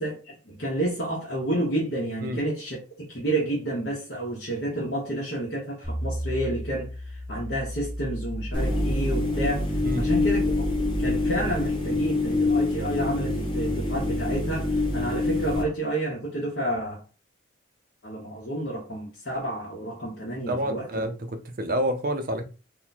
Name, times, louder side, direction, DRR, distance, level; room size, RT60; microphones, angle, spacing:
voice 1, 0.0-9.7 10.0-10.7 11.0-17.0 18.0-21.1, right 1 dB, 55° left, 1.0 m, -30 dB
sound 1, 5.8-12.1, equal, 5° right, 0.6 m, -34 dB
sound 2, 8.5-15.6, left 2 dB, 25° left, 1.1 m, -26 dB
voice 2, 20.5-22.4, equal, 45° right, 0.5 m, -28 dB
3.0 x 2.2 x 4.0 m
head